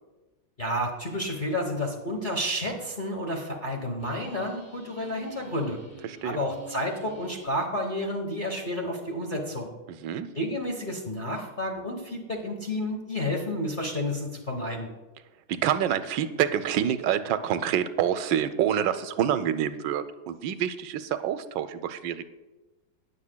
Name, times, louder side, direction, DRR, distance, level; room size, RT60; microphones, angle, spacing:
voice 1, 0.6-5.8 6.2-9.7 10.3-14.9, left 1 dB, 30° left, 1 dB, 1.0 m, -30 dB
sound 1, 2.1-2.3 2.6-2.8 4.0-7.5, right 1 dB, 5° left, 1.9 m, -49 dB
voice 2, 6.0-6.4 9.9-10.3 15.5-22.2, right 10 dB, 80° right, 12 dB, 1.2 m, -27 dB
19.0 x 7.3 x 2.2 m, 1.1 s
omnidirectional pair, 2.0 m